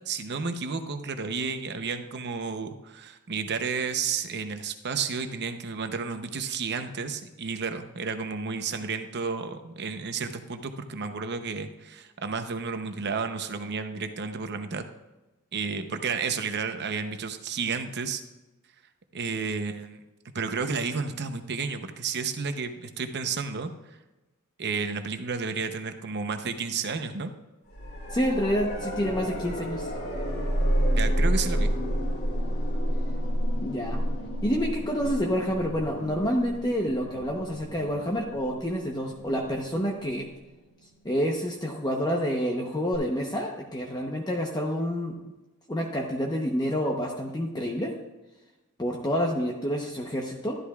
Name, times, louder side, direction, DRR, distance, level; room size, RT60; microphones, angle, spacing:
voice 1, 0.1-14.8 15.5-18.2 19.1-20.0 20.3-23.7 24.6-27.3 30.9-31.7, right 5 dB, 50° right, 8 dB, 0.8 m, -32 dB
sound 1, 27.7-40.6 42.9-43.0, equal, 50° left, 2.4 m, -30 dB
voice 2, 28.1-29.9 33.6-34.0 34.4-40.3 41.0-45.2 45.7-47.9 48.8-50.5, equal, 20° left, 0 dB, 0.9 m, -28 dB
12.5 x 11.5 x 2.4 m, 1.1 s
head